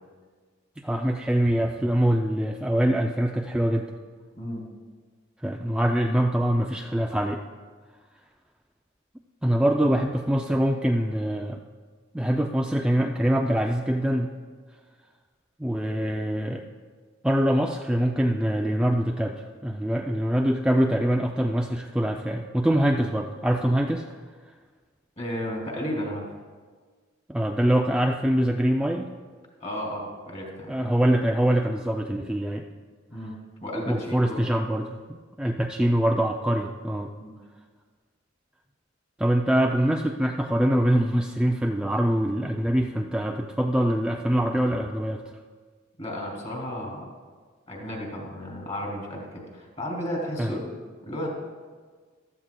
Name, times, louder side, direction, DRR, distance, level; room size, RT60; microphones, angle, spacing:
voice 1, 0.8-3.9 5.4-7.4 9.4-11.6 12.1-14.3 15.6-16.6 17.2-24.1 27.3-29.1 30.7-32.7 33.9-37.1 39.2-45.3 50.4-50.6, right 1 dB, 5° right, 2 dB, 0.3 m, -24 dB
voice 2, 25.2-26.3 29.6-30.7 33.1-34.4 37.2-37.4 46.0-47.0 47.7-50.7 51.0-51.3, equal, 35° left, -1 dB, 2.5 m, -33 dB
15.0 x 12.5 x 2.2 m, 1.5 s
head